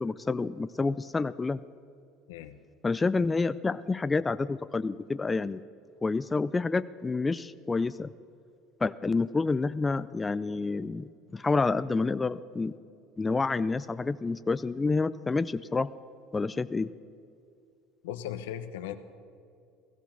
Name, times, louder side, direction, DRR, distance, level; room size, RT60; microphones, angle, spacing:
voice 1, 0.0-1.6 2.8-5.6 6.0-8.1 8.8-12.7 13.2-15.9 16.3-16.9, left 3 dB, 20° left, 14 dB, 0.4 m, -28 dB
voice 2, 18.0-18.9, left 11 dB, 90° left, 9 dB, 0.9 m, -37 dB
16.5 x 14.5 x 5.9 m, 2.4 s
supercardioid pair, 95°, 0 cm